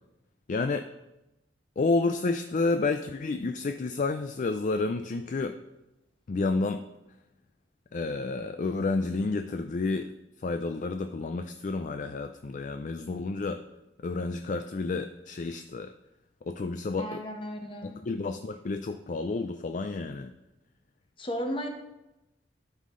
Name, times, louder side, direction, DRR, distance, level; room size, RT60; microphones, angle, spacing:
voice 1, 0.5-0.9 1.8-5.6 6.3-6.8 7.9-10.1 10.4-13.6 14.0-15.9 16.4-17.2 17.8-20.3, left 3 dB, 45° left, 8 dB, 0.4 m, -30 dB
voice 2, 17.0-18.0 21.2-21.7, equal, 30° left, 4 dB, 1.1 m, -34 dB
12.0 x 5.6 x 3.8 m, 0.95 s
head